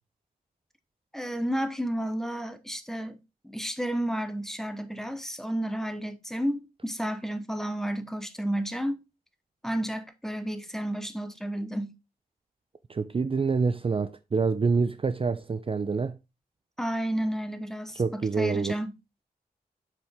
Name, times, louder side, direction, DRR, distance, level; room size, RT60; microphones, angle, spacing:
voice 1, 1.1-9.0 9.6-11.9 16.8-18.9, equal, 5° left, 0.9 m, -31 dB
voice 2, 12.9-16.2 17.9-18.8, right 4 dB, 35° right, 0.5 m, -26 dB
7.4 x 4.6 x 3.5 m
cardioid pair, 75°, 16 cm